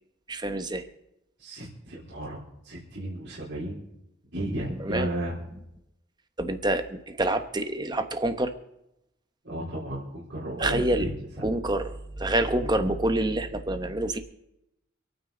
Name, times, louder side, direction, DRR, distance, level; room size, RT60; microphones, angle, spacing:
voice 1, 0.3-0.9 4.7-5.1 6.4-8.5 10.6-11.1 11.4-14.2, right 1 dB, 20° right, 8 dB, 1.1 m, -27 dB
voice 2, 1.4-2.4 2.6-3.8 4.3-5.4 9.4-11.1, right 1 dB, 60° right, -7 dB, 4.0 m, -33 dB
27.5 x 9.4 x 4.0 m, 0.83 s
head